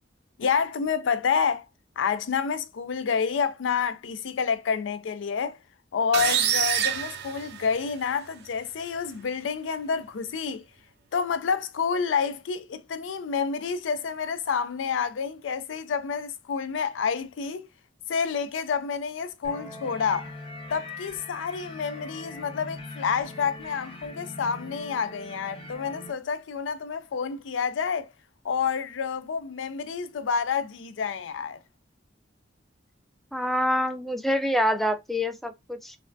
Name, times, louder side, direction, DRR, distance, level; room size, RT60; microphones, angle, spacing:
voice 1, 0.4-1.6 2.0-5.6 5.9-10.6 11.1-17.7 18.1-20.3 20.7-28.1 28.4-31.6, left 6 dB, 80° left, 0.4 m, -28 dB
sound 1, 6.1-8.1, right 9 dB, 60° right, 0.5 m, -26 dB
sound 2, 19.4-26.1, left 1 dB, 30° left, 0.8 m, -42 dB
voice 2, 33.3-36.0, equal, ahead, 0.3 m, -26 dB
3.3 x 2.2 x 2.5 m
head